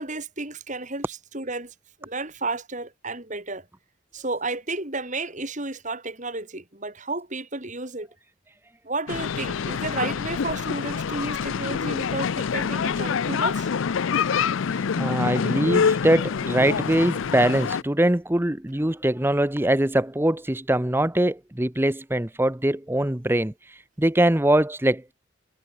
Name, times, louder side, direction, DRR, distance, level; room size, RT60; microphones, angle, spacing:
voice 1, 0.0-1.7 2.0-3.6 4.1-8.1 8.8-13.7, right 2 dB, 35° right, 3.4 m, -32 dB
sound 1, 9.1-17.8, left 6 dB, 65° left, 0.4 m, -26 dB
voice 2, 15.0-23.5 24.0-25.1, right 1 dB, 10° right, 0.7 m, -22 dB
head